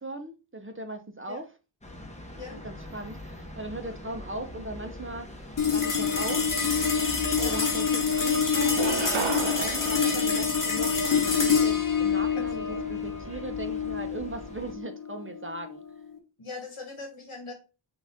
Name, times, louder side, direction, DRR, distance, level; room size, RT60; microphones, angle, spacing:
voice 1, 0.0-1.5 2.5-6.5 7.4-15.8, right 2 dB, 25° right, 0.7 m, -38 dB
sound 1, 1.8-14.7, left 1 dB, 15° left, 0.9 m, -43 dB
sound 2, 5.6-16.2, left 6 dB, 40° left, 1.1 m, -26 dB
sound 3, 6.9-7.0 7.4-8.1 8.6-11.2, right 6 dB, 65° right, 0.7 m, -35 dB
voice 2, 12.4-12.9 16.4-17.5, left 3 dB, 85° left, 1.7 m, -41 dB
5.8 x 2.6 x 3.5 m
wide cardioid pair, 55°, 49 cm